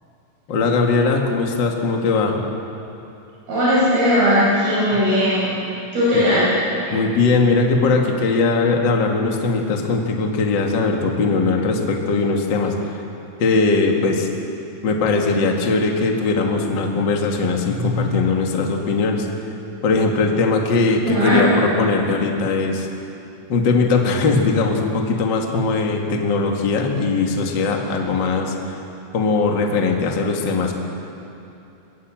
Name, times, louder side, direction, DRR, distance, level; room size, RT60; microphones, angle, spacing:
voice 1, 0.5-2.4 6.1-6.2 6.9-13.0 13.4-14.3 14.8-19.3 19.8-22.9 23.5-28.8 29.1-30.7, left 3 dB, 55° left, 1 dB, 1.3 m, -20 dB
voice 2, 3.5-5.5 5.9-6.5 21.0-21.5, equal, 55° right, -10 dB, 7.5 m, -17 dB
21.5 x 18.0 x 7.6 m, 2.8 s
omnidirectional pair, 5.3 m